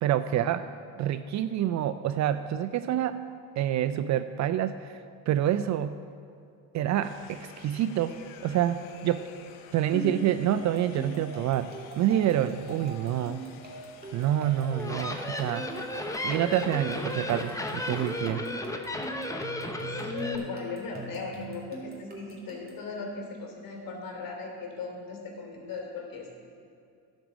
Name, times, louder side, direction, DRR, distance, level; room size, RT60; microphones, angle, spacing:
voice 1, 0.0-3.2 3.6-5.0 5.3-5.9 6.7-9.3 9.7-13.4 14.1-15.7 16.2-18.4, right 11 dB, 45° right, 12 dB, 0.4 m, -27 dB
sound 1, 7.0-18.2, left 8 dB, 80° left, 0.9 m, -51 dB
voice 2, 9.9-10.3 18.3-18.6 19.9-26.3, left 4 dB, 50° left, 0 dB, 2.8 m, -38 dB
sound 2, 10.6-22.9, right 4 dB, 20° right, 2.6 m, -43 dB
sound 3, 14.6-20.4, left 1 dB, 10° left, 0.8 m, -34 dB
10.5 x 5.4 x 7.2 m, 2.5 s
hypercardioid pair, 75°, 43 cm